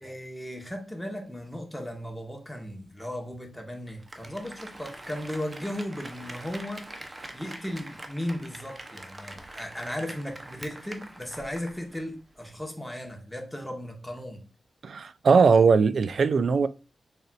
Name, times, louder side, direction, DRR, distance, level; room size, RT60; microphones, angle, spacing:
voice 1, 0.0-14.4, left 1 dB, 5° left, 1.4 m, -36 dB
Applause, 3.9-12.1 12.4-12.5, right 1 dB, 35° right, 0.9 m, -44 dB
voice 2, 14.8-16.7, right 5 dB, 75° right, 0.3 m, -20 dB
4.3 x 4.0 x 2.5 m
cardioid pair, 60°, 0 cm